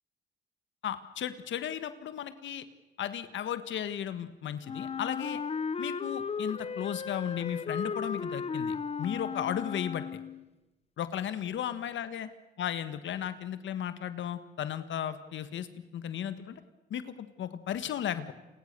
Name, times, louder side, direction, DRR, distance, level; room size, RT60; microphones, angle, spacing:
voice 1, 0.8-2.6 3.0-5.4 5.8-10.2 11.0-12.3 12.6-16.6 16.9-18.3, left 10 dB, 70° left, 12 dB, 1.6 m, -35 dB
Wind instrument woodwind instrument, 4.6-10.4, left 5 dB, 30° left, 0.9 m, -35 dB
29.5 x 22.0 x 6.8 m, 1.1 s
cardioid pair, 90°, 20 cm